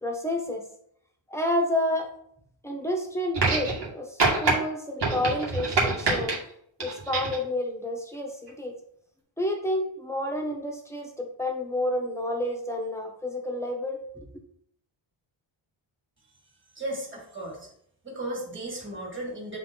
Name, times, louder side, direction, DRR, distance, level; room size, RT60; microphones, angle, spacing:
voice 1, 0.0-0.6 1.3-2.1 2.6-6.4 6.8-8.8 9.4-14.3, left 1 dB, 5° left, 2 dB, 1.2 m, -30 dB
sound 1, 3.3-3.9 4.2-4.5 5.0-6.4 6.8-7.4 8.5-8.6, right 3 dB, 55° right, 2.2 m, -25 dB
voice 2, 16.8-17.7 18.0-19.6, right 1 dB, 25° right, -1 dB, 2.6 m, -35 dB
8.7 x 4.1 x 3.9 m, 0.68 s
wide cardioid pair, 150°, 49 cm